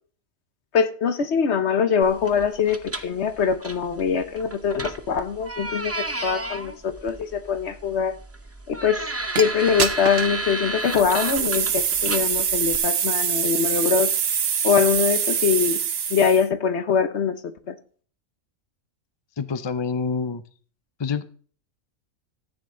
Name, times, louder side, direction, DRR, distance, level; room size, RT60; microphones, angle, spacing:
voice 1, 0.7-8.1 8.7-9.1 9.4-14.1 14.6-15.8 16.1-17.4 17.7-17.8, left 6 dB, 55° left, 1.2 m, -23 dB
sound 1, 2.0-12.8, right 2 dB, 15° right, 0.6 m, -33 dB
sound 2, 9.4-9.5 9.8-10.4 10.9-16.5, right 8 dB, 55° right, 1.0 m, -24 dB
voice 2, 19.4-20.4 21.0-21.2, left 5 dB, 40° left, 0.4 m, -26 dB
13.5 x 8.9 x 3.8 m
omnidirectional pair, 1.4 m